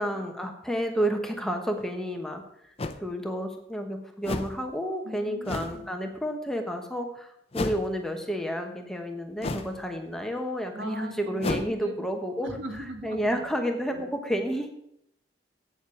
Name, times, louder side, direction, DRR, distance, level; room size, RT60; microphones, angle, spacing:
voice 1, 0.0-2.7 3.0-12.5 13.0-14.7, equal, 5° left, 4 dB, 1.0 m, -31 dB
sound 1, 1.8-1.9 2.8-3.0 4.2-4.6 5.4-5.8 7.5-7.9 9.4-9.8 11.4-11.7, left 2 dB, 30° left, 0.7 m, -32 dB
voice 2, 5.0-5.9 10.7-12.1 12.4-13.4 13.8-14.0, right 1 dB, 80° right, 4 dB, 1.8 m, -40 dB
8.7 x 7.3 x 7.0 m, 0.75 s
head